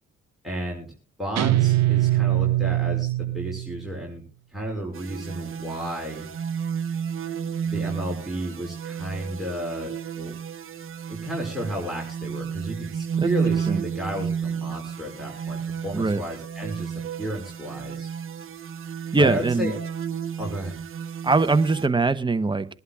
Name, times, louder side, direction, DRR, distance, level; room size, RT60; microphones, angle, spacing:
voice 1, 0.4-0.9 1.2-4.2 4.5-6.2 7.7-10.4 11.1-18.1 19.2-19.8 20.4-20.7, equal, ahead, 0 dB, 5.5 m, -32 dB
Guitar, 1.4-4.0, right 16 dB, 60° right, 0.6 m, -22 dB
sound 1, 4.9-21.9, right 7 dB, 45° right, 1.1 m, -32 dB
voice 2, 19.1-19.7 21.2-22.7, right 3 dB, 15° right, 10 dB, 1.0 m, -21 dB
25.0 x 11.5 x 2.4 m, 0.37 s
supercardioid pair, 65°, 29 cm